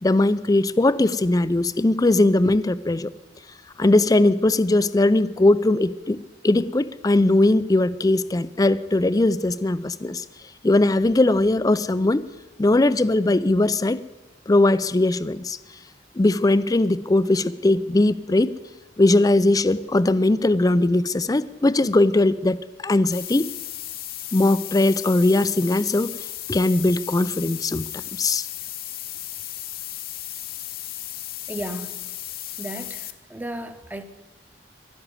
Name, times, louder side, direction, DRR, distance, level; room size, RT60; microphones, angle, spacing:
voice 1, 0.0-3.1 3.8-6.2 6.4-10.2 10.6-12.2 12.6-14.0 14.5-15.6 16.2-18.5 19.0-23.5 24.3-26.1 26.5-27.8 28.2-28.5, left 2 dB, 20° left, 16 dB, 0.4 m, -20 dB
sound 1, 23.1-33.1, left 13 dB, 55° left, 1.0 m, -35 dB
voice 2, 31.5-32.0 32.6-34.0, right 1 dB, 10° right, 9 dB, 0.9 m, -34 dB
12.0 x 12.0 x 9.7 m, 1.1 s
head